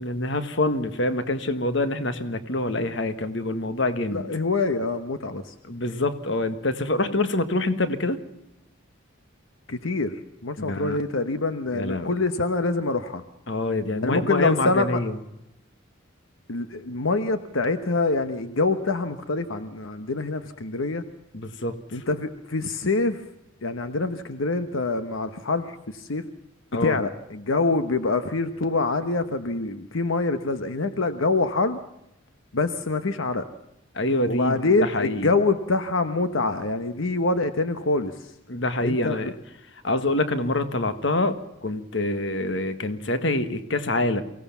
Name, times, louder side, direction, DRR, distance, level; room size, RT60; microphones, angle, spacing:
voice 1, 0.0-4.2 5.7-8.2 10.6-11.0 11.7-12.1 13.5-15.1 21.3-21.7 26.7-27.0 33.9-35.3 38.5-39.3 39.8-44.2, left 2 dB, 60° left, 10 dB, 1.5 m, -26 dB
voice 2, 4.1-5.5 9.7-13.2 14.0-15.0 16.5-21.0 21.9-23.2 23.6-26.2 26.8-31.8 32.5-33.5 34.3-38.1 38.8-39.3, left 3 dB, 80° left, 10 dB, 1.1 m, -25 dB
23.5 x 17.0 x 7.2 m, 0.85 s
head